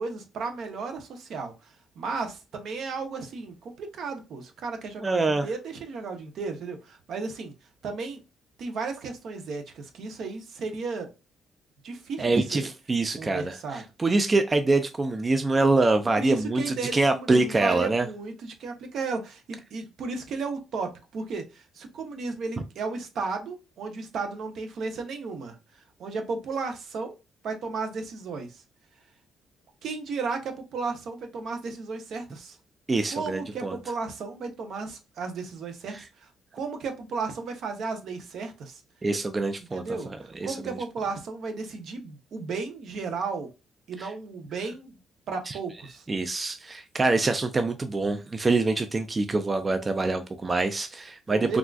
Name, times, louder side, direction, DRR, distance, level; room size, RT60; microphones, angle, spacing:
voice 1, 0.0-1.5 2.0-7.5 7.8-8.2 8.6-11.1 11.8-12.7 13.2-13.9 16.2-25.5 26.0-27.2 27.4-28.6 29.8-32.6 33.1-35.9 36.2-36.3 36.5-38.8 39.7-43.5 43.9-44.9 45.3-46.0 51.3-51.6, right 4 dB, 70° right, 0.7 m, -34 dB
voice 2, 5.0-5.5 12.2-18.1 32.9-33.8 35.9-36.0 39.0-40.0 40.4-40.7 44.0-44.1 45.5-45.6 46.1-51.6, right 3 dB, 30° right, 0.3 m, -25 dB
3.5 x 2.4 x 2.3 m
cardioid pair, 90°, 0 cm